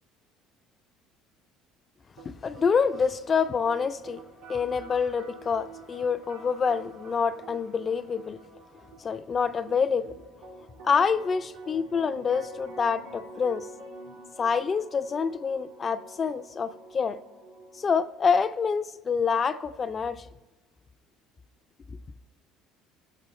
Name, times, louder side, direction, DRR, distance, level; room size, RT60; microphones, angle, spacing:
voice 1, 2.2-4.2 4.5-8.4 9.0-10.1 10.8-13.7 14.4-17.2 17.7-20.3, left 6 dB, 30° left, 0.4 m, -27 dB
sound 1, 2.2-18.2, right 2 dB, 70° right, 2.7 m, -48 dB
17.0 x 7.6 x 3.1 m
cardioid pair, 125°, 0 cm